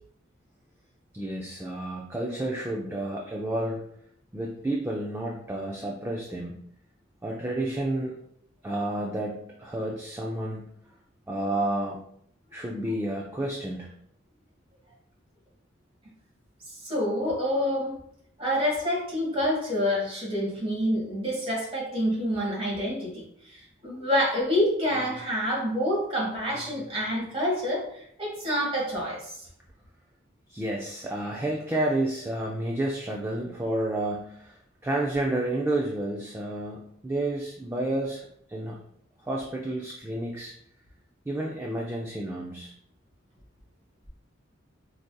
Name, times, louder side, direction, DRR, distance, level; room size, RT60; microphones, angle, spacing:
voice 1, 1.1-3.8 4.3-6.6 7.2-8.1 8.6-10.7 11.3-12.0 12.5-13.9 30.5-38.8 39.2-40.5 41.3-42.7, right 1 dB, 10° right, -2 dB, 0.3 m, -30 dB
voice 2, 16.7-17.9 18.4-29.4, equal, 30° right, -4 dB, 1.4 m, -27 dB
4.7 x 2.6 x 2.2 m, 0.69 s
head